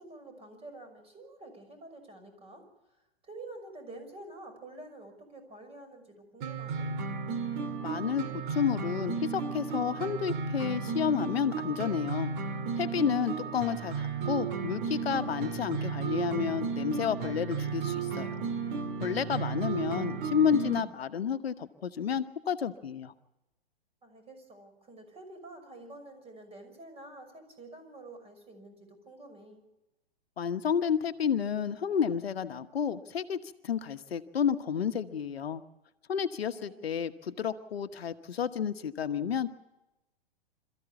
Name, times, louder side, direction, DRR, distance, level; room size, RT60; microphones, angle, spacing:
voice 1, 0.0-2.6 3.2-6.9 13.2-13.4 24.0-29.6 36.5-36.9, right 2 dB, 20° right, 7 dB, 5.9 m, -48 dB
sound 1, 6.4-20.8, right 5 dB, 55° right, 2.1 m, -34 dB
voice 2, 7.8-12.3 12.8-18.4 19.0-23.1 30.4-35.6 36.1-39.5, left 7 dB, 80° left, 10 dB, 1.2 m, -31 dB
27.0 x 14.5 x 7.1 m, 0.96 s
hypercardioid pair, 115°, 30 cm